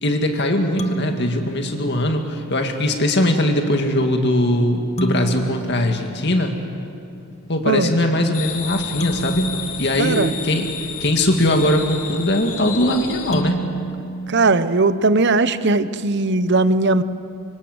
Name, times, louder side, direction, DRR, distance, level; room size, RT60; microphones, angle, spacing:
voice 1, 0.0-6.6 7.5-9.5 9.8-10.7 11.0-13.6, left 1 dB, 50° left, 4 dB, 2.0 m, -20 dB
sound 1, 0.8-2.5 5.0-7.0 9.0-11.1 13.3-15.4, right 2 dB, 30° left, 1.3 m, -30 dB
sound 2, 8.3-13.4, left 7 dB, 70° left, 2.4 m, -31 dB
voice 2, 10.0-10.3 14.3-17.0, right 3 dB, 50° right, 13 dB, 0.9 m, -18 dB
26.0 x 25.0 x 8.0 m, 2.5 s
head